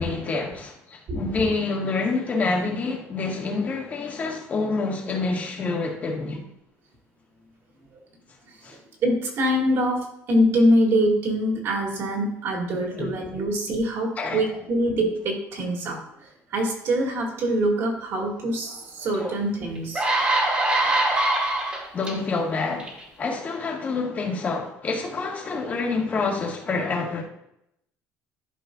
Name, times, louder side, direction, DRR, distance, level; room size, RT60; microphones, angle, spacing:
voice 1, 0.0-6.5 8.6-8.8 12.7-13.1 14.2-14.4 21.9-27.2, left 3 dB, 30° left, 1.7 m, -27 dB
voice 2, 8.5-20.0 21.3-21.4, equal, 55° right, 2.5 m, -24 dB
sound 1, 19.2-19.3 19.7-22.1 22.8-23.0, right 2 dB, 20° right, 1.8 m, -23 dB
12.0 x 5.4 x 2.5 m
cardioid pair, 140°, 5 cm